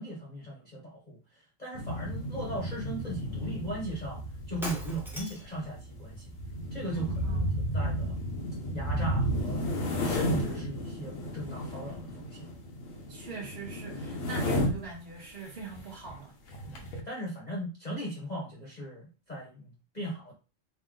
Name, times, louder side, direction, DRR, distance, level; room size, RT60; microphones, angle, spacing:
voice 1, 0.0-6.3 6.7-8.2 8.7-9.7 10.0-12.5 16.7-20.3, equal, 35° left, 1.1 m, -38 dB
sound 1, 1.7-14.9 15.6-15.8 16.1-16.2 16.5-17.0, equal, 85° left, 1.3 m, -33 dB
Shatter, 4.6-5.6, equal, ahead, 0.8 m, -39 dB
voice 2, 7.0-7.6 13.1-16.3, right 4 dB, 55° right, 1.0 m, -42 dB
3.4 x 2.8 x 3.7 m
omnidirectional pair, 1.3 m